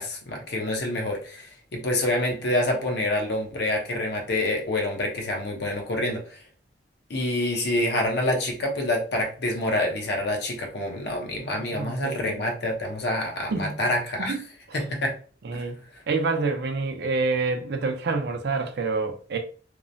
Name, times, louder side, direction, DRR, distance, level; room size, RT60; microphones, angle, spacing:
voice 1, 0.0-6.4 7.1-14.4 14.7-15.1 15.5-15.7, left 1 dB, 65° left, 0.7 m, -27 dB
voice 2, 11.7-12.4 13.5-13.8 14.2-14.4 14.7-14.8 15.4-15.8 16.1-19.4, right 3 dB, 65° right, 0.5 m, -27 dB
2.9 x 2.1 x 2.5 m
head